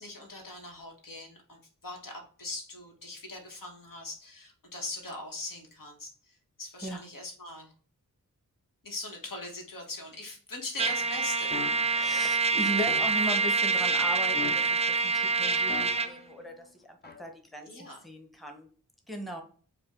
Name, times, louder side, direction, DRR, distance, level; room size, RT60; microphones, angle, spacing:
voice 1, 0.0-6.3 6.6-7.7 8.8-11.5 17.7-18.0, left 2 dB, 75° left, 2 dB, 1.2 m, -41 dB
Trumpet, 10.8-16.1, right 4 dB, 20° right, 0.4 m, -26 dB
sound 1, 11.5-12.0 12.9-13.4 14.3-15.0 15.7-16.3 17.0-17.2, left 5 dB, 30° left, 0.6 m, -40 dB
voice 2, 11.9-18.7 19.1-19.4, equal, ahead, 3 dB, 0.8 m, -37 dB
4.9 x 2.2 x 3.6 m, 0.43 s
wide cardioid pair, 65°, 33 cm